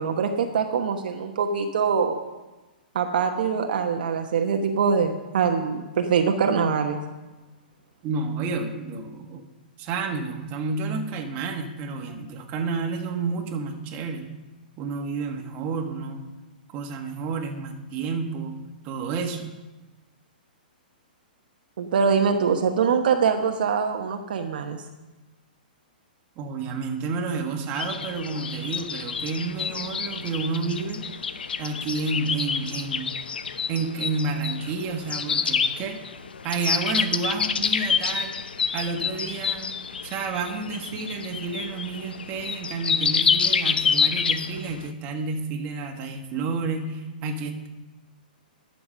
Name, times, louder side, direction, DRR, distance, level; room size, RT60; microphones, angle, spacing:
voice 1, 0.0-2.2 2.9-7.0 21.8-24.8, right 6 dB, 65° right, 4 dB, 1.1 m, -23 dB
voice 2, 8.0-9.5 9.8-14.3 14.8-16.2 16.7-18.6 18.8-19.5 26.4-31.1 31.6-33.1 33.7-36.1 36.4-38.4 38.7-39.7 40.0-47.7, right 4 dB, 35° right, 3 dB, 1.6 m, -30 dB
sound 1, 27.8-44.9, left 6 dB, 90° left, 0.7 m, -28 dB
11.0 x 6.9 x 6.7 m, 1.1 s
hypercardioid pair, 135°, 5 cm